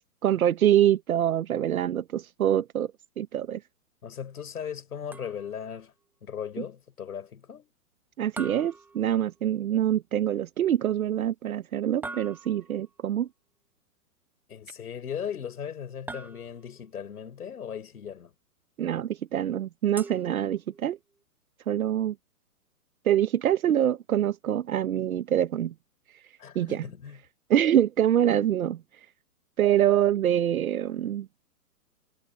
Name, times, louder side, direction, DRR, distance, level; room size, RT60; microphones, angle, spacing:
voice 1, 0.2-2.9 3.2-3.6 8.2-13.3 18.8-21.0 21.7-22.1 23.0-25.7 26.5-26.8 27.5-28.8 29.6-31.3, right 11 dB, 65° right, 1.1 m, -25 dB
voice 2, 4.0-5.9 6.2-7.7 14.5-18.3 26.4-27.2, left 8 dB, 75° left, 5.4 m, -37 dB
sound 1, 5.1-5.7 8.4-9.6 12.0-12.9 16.1-16.9 20.0-21.0, right 3 dB, 5° right, 1.1 m, -43 dB
hypercardioid pair, 135°, 45 cm